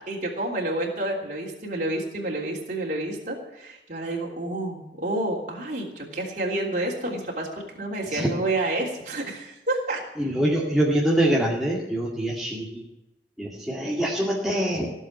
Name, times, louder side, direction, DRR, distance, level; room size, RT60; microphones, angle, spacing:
voice 1, 0.1-7.5 7.7-10.0, right 1 dB, 45° right, -3 dB, 3.3 m, -29 dB
voice 2, 10.2-12.8 13.4-14.9, right 1 dB, ahead, -6 dB, 2.3 m, -24 dB
16.5 x 7.4 x 9.8 m, 0.93 s
head